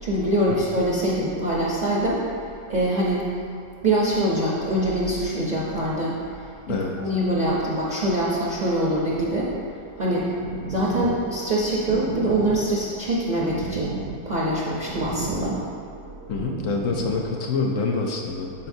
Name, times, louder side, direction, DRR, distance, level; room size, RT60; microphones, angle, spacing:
voice 1, 0.0-2.2 2.7-3.2 3.8-6.2 6.7-9.5 10.0-10.3 10.7-13.9 14.3-15.6, right 1 dB, 40° right, -6 dB, 0.7 m, -24 dB
sound 1, 9.9-17.3, right 4 dB, 75° right, 1.0 m, -34 dB
voice 2, 16.3-18.7, left 4 dB, 70° left, 0 dB, 0.9 m, -26 dB
11.0 x 4.4 x 2.7 m, 2.5 s
omnidirectional pair, 1.5 m